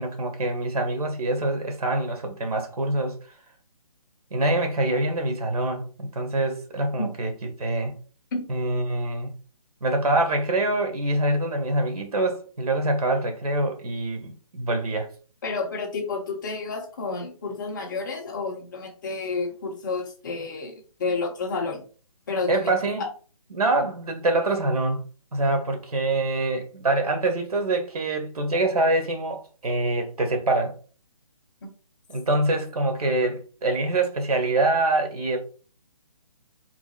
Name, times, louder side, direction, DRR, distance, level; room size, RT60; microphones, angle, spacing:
voice 1, 0.0-3.2 4.3-7.9 8.5-9.3 9.8-15.1 22.5-23.1 23.5-25.0 25.3-30.7 32.1-35.4, right 2 dB, 90° right, 1.7 m, -25 dB
voice 2, 15.4-21.8 22.3-23.1, left 4 dB, 30° left, 1.1 m, -30 dB
4.7 x 4.0 x 2.4 m
hypercardioid pair, 170°, 19 cm